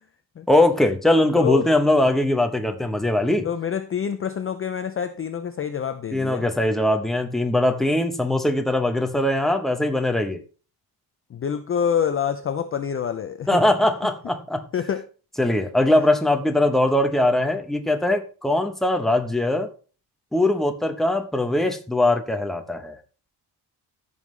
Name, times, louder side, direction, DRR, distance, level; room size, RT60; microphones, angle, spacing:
voice 1, 0.5-3.5 6.1-10.4 13.5-14.6 15.4-19.7 20.3-23.0, left 1 dB, ahead, 5 dB, 0.8 m, -21 dB
voice 2, 3.4-6.5 11.3-13.5 14.7-15.0, left 8 dB, 35° left, 9 dB, 0.5 m, -26 dB
14.5 x 5.5 x 3.2 m, 0.37 s
cardioid pair, 165°, 42 cm